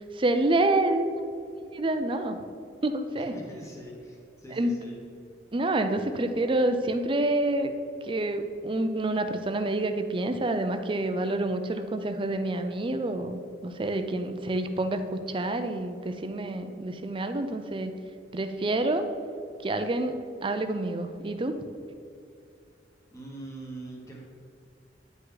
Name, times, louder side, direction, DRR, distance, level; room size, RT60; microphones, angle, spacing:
voice 1, 0.2-1.1 1.7-2.4 2.8-3.3 4.5-4.8 5.5-7.7 8.0-17.9 18.3-19.1 19.6-20.2 20.4-21.6, right 2 dB, 30° right, 8 dB, 0.5 m, -28 dB
voice 2, 3.1-4.9 23.1-24.2, right 1 dB, 15° left, -3 dB, 1.3 m, -43 dB
10.0 x 5.4 x 4.0 m, 2.5 s
head